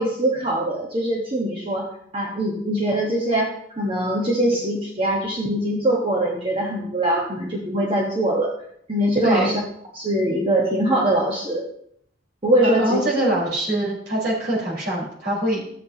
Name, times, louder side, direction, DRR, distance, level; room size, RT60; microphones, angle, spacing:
voice 1, 0.0-1.9 2.1-8.5 8.9-9.6 9.9-11.6 12.4-13.0, right 1 dB, 30° right, -2 dB, 1.4 m, -22 dB
voice 2, 12.6-15.6, right 1 dB, 60° right, -5 dB, 4.7 m, -23 dB
13.0 x 8.5 x 2.9 m, 0.70 s
head